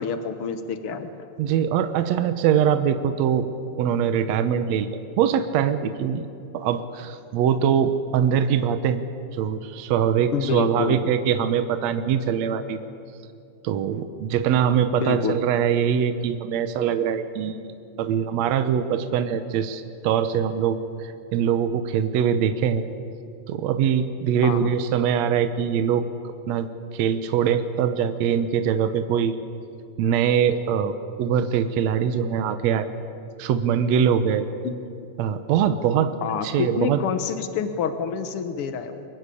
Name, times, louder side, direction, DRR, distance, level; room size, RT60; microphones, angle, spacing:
voice 1, 0.0-1.3 10.3-11.3 15.0-15.4 24.4-24.8 34.6-34.7 36.2-39.0, left 6 dB, 80° left, 9 dB, 1.2 m, -28 dB
voice 2, 1.4-3.5 3.8-6.2 6.5-9.0 9.3-12.9 13.6-17.7 18.0-22.9 23.5-26.7 26.9-29.3 30.0-32.9 33.4-34.5 35.2-36.1 36.4-37.0, right 8 dB, 75° right, 10 dB, 1.6 m, -23 dB
24.0 x 21.5 x 8.4 m, 2.5 s
omnidirectional pair, 4.2 m